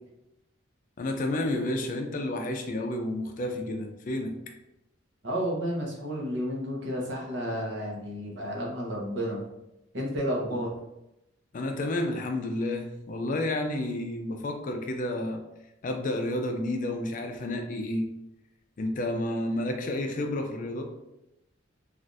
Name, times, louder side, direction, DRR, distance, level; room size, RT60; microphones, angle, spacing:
voice 1, 1.0-4.4 10.5-10.6 11.5-15.4 15.8-18.1 18.8-20.8, left 1 dB, 40° left, 4 dB, 0.4 m, -30 dB
voice 2, 5.2-9.4 9.9-10.7, equal, 65° right, -2 dB, 0.8 m, -31 dB
3.2 x 2.4 x 2.6 m, 0.89 s
head